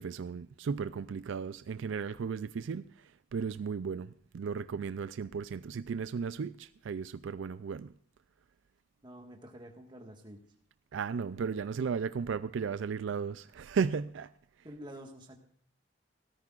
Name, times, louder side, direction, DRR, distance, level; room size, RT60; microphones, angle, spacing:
voice 1, 0.0-2.9 3.3-7.9 10.9-14.3, right 6 dB, 75° right, 0.4 m, -35 dB
voice 2, 9.0-10.4 14.6-15.4, equal, 25° right, 1.6 m, -48 dB
17.5 x 13.5 x 2.5 m
head